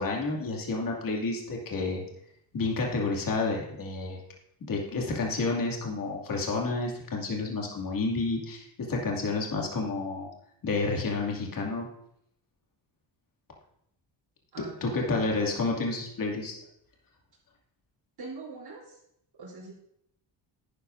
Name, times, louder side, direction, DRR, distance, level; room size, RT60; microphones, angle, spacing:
voice 1, 0.0-2.0 2.5-4.2 4.7-10.3 10.6-11.9 14.8-16.5, left 3 dB, 45° left, -1 dB, 2.5 m, -30 dB
voice 2, 14.5-15.3 18.2-18.8 19.4-19.7, right 3 dB, 55° right, -4 dB, 3.8 m, -42 dB
11.0 x 10.0 x 2.7 m, 0.74 s
cardioid pair, 105°, 46 cm